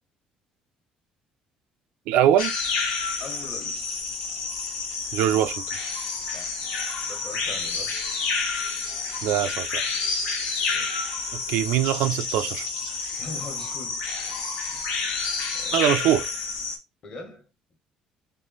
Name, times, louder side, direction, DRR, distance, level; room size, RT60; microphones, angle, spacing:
voice 1, 2.1-2.5 5.1-5.8 9.2-9.9 11.3-12.7 15.7-16.3, right 11 dB, 90° right, 0.5 m, -23 dB
sound 1, 2.4-16.8, left 4 dB, 90° left, 1.3 m, -29 dB
voice 2, 3.2-4.0 6.2-6.7 7.1-7.9 10.7-11.1 13.2-14.0 14.7-15.0 15.5-16.1 17.0-17.5, left 3 dB, 35° left, 1.2 m, -41 dB
3.6 x 3.3 x 3.9 m
cardioid pair, 170°, 2 cm